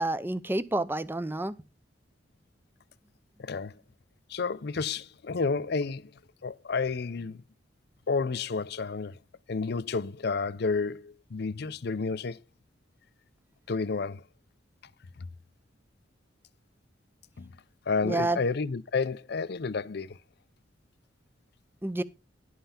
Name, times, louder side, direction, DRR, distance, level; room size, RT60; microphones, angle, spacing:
voice 1, 0.0-1.5 18.0-18.4 21.8-22.0, right 2 dB, 10° right, 0.6 m, -29 dB
voice 2, 3.4-3.8 4.3-6.1 6.4-7.4 8.1-9.2 9.5-12.4 13.7-14.2 17.4-17.5 17.9-20.2, left 4 dB, 55° left, 0.5 m, -30 dB
11.5 x 5.6 x 5.8 m
head